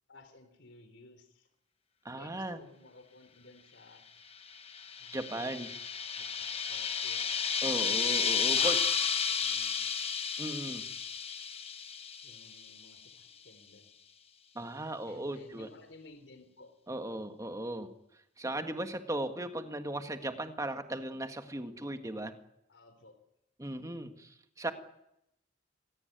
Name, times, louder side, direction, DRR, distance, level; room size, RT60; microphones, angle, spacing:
voice 1, 0.1-1.5 2.2-4.0 5.0-5.5 6.2-7.2 8.4-8.7 9.0-9.9 10.7-10.8 12.2-13.9 15.0-16.7 22.7-23.2, left 2 dB, 80° left, 9 dB, 3.5 m, -56 dB
voice 2, 2.0-2.6 5.1-5.7 7.6-8.8 10.4-10.8 14.5-15.7 16.9-17.9 18.4-22.3 23.6-24.7, right 1 dB, 20° right, 7 dB, 1.7 m, -37 dB
sound 1, 4.5-12.8, left 6 dB, 30° left, 1.5 m, -32 dB
25.5 x 17.5 x 9.2 m, 0.83 s
head